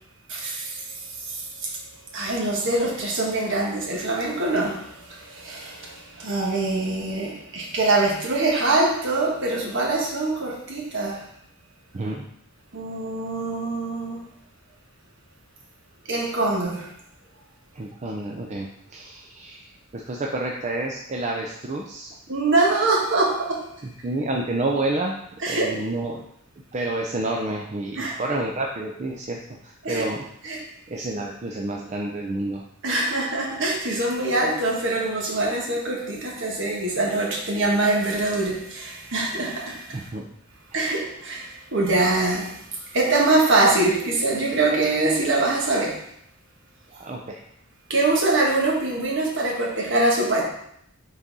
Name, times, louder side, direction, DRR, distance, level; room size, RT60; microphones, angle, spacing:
voice 1, 0.3-1.7 2.1-11.2 12.7-14.2 16.1-16.9 22.3-23.6 25.4-25.7 28.0-28.2 29.8-30.1 30.4-30.6 32.8-40.1 40.7-42.6 42.9-46.0 47.9-50.4, right 2 dB, 60° right, -1 dB, 1.4 m, -24 dB
voice 2, 11.9-12.2 17.7-22.2 23.8-25.1 25.5-26.2 26.7-30.2 30.9-32.6 32.9-33.2 39.9-40.3 46.9-47.4, right 2 dB, 30° right, 0 dB, 0.5 m, -29 dB
5.9 x 4.1 x 4.0 m, 0.73 s
head